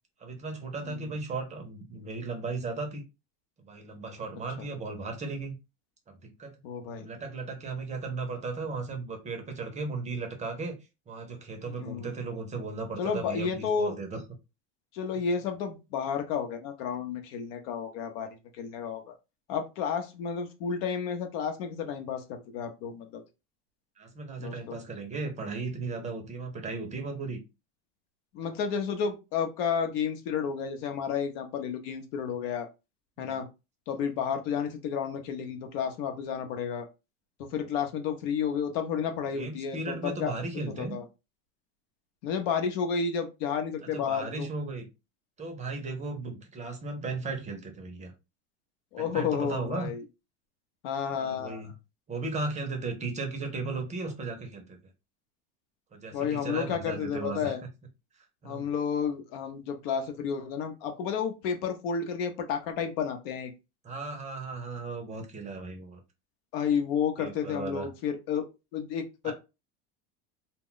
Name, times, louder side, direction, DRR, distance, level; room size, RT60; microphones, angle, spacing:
voice 1, 0.2-3.0 3.6-5.6 6.1-6.5 7.0-10.8 11.1-14.2 24.0-27.4 33.2-33.4 37.7-37.8 39.3-41.0 44.1-44.9 45.4-48.1 49.0-49.9 51.1-51.7 52.1-54.8 55.9-57.5 58.4-58.7 63.8-66.0 67.2-67.9 69.2-69.3, right 3 dB, 20° right, 4 dB, 0.6 m, -36 dB
voice 2, 0.8-1.1 4.6-4.7 6.6-7.1 11.7-12.1 13.0-14.0 14.9-19.1 19.5-23.2 24.4-24.8 28.3-32.7 33.2-33.4 33.9-36.9 37.4-40.3 40.6-41.0 42.2-44.5 48.9-50.0 50.8-51.6 56.1-57.6 58.4-63.5 66.5-68.5 68.7-69.3, left 7 dB, 70° left, 6 dB, 0.7 m, -31 dB
2.2 x 2.0 x 3.7 m, 0.27 s
supercardioid pair, 130°, 33 cm